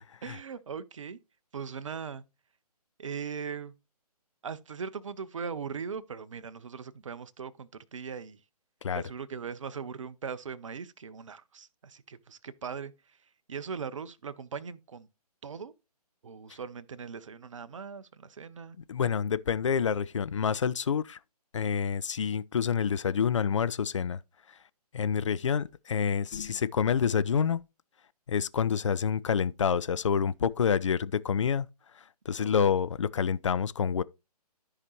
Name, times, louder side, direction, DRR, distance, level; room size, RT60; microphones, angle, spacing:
voice 1, 0.2-1.2 1.5-2.2 3.0-3.7 4.4-8.4 8.9-15.1 15.4-15.7 16.2-18.8 32.4-32.5, right 6 dB, 50° right, 0.7 m, -40 dB
voice 2, 18.9-21.2 21.5-24.2 24.9-27.6 28.3-31.7 32.3-34.0, left 7 dB, 50° left, 0.4 m, -27 dB
13.0 x 4.9 x 3.0 m
figure-of-eight pair, 135°, 20 cm